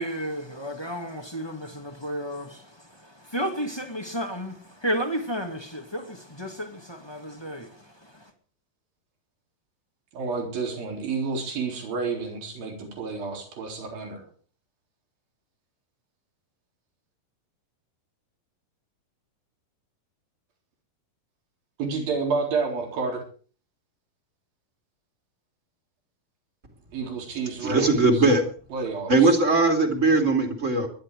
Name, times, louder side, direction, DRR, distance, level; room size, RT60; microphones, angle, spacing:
voice 1, 0.0-2.6 3.0-7.7, equal, 10° left, 1.5 m, -32 dB
voice 2, 10.1-14.2 21.8-23.2 26.9-28.2 28.7-29.3, right 4 dB, 75° right, 5.7 m, -30 dB
voice 3, 27.6-28.4 29.1-30.9, right 3 dB, 20° right, 2.7 m, -20 dB
21.0 x 11.5 x 4.9 m
omnidirectional pair, 4.1 m